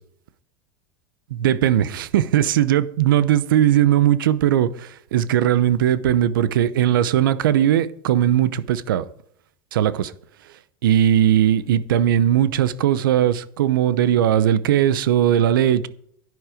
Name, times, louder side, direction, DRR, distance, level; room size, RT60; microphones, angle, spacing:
voice 1, 1.3-9.0 9.7-10.1 10.8-15.9, right 11 dB, 90° right, 0.8 m, -19 dB
11.0 x 9.5 x 5.0 m
supercardioid pair, 120°, 11 cm